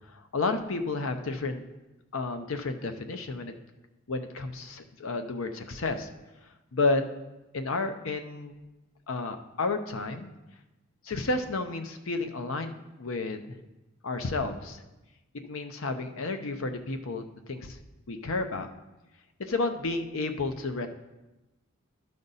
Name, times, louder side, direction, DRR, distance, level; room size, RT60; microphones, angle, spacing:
voice 1, 0.1-1.6 2.1-3.5 4.1-6.1 6.7-7.0 7.5-8.6 9.1-10.3 11.0-13.6 14.0-14.8 15.3-17.8 18.1-18.7 19.4-20.9, left 3 dB, 70° left, 7 dB, 0.7 m, -31 dB
12.0 x 5.1 x 4.1 m, 1.0 s
head